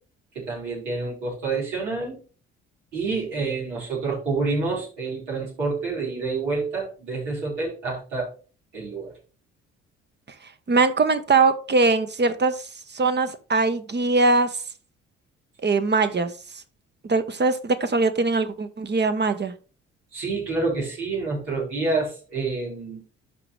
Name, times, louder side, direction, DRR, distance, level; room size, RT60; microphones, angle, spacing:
voice 1, 0.3-2.2 2.9-8.3 8.7-9.1 20.1-23.0, right 3 dB, 80° right, -5 dB, 4.9 m, -28 dB
voice 2, 10.7-14.6 15.6-16.6 17.0-19.5, right 3 dB, 30° right, 10 dB, 1.2 m, -22 dB
12.0 x 5.0 x 3.3 m, 0.37 s
figure-of-eight pair, 45°, 35 cm